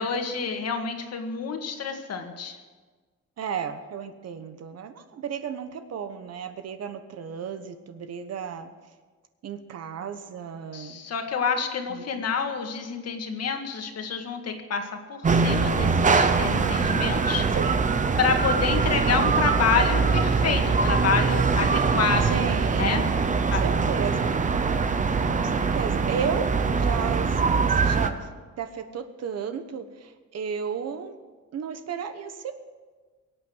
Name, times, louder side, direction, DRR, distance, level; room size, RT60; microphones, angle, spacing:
voice 1, 0.0-2.6 10.7-17.5 18.2-22.4 22.8-23.0 23.5-23.6, left 5 dB, 55° left, 5 dB, 1.8 m, -28 dB
voice 2, 3.4-8.7 9.4-11.0 11.9-12.2 17.5-17.8 22.2-24.3 25.3-26.5 26.7-28.3 28.6-31.2 31.5-32.5, right 7 dB, 55° right, 9 dB, 1.2 m, -34 dB
sound 1, 15.2-28.1, right 4 dB, 25° right, 0.8 m, -23 dB
23.0 x 9.0 x 6.3 m, 1.4 s
cardioid pair, 170°, 30 cm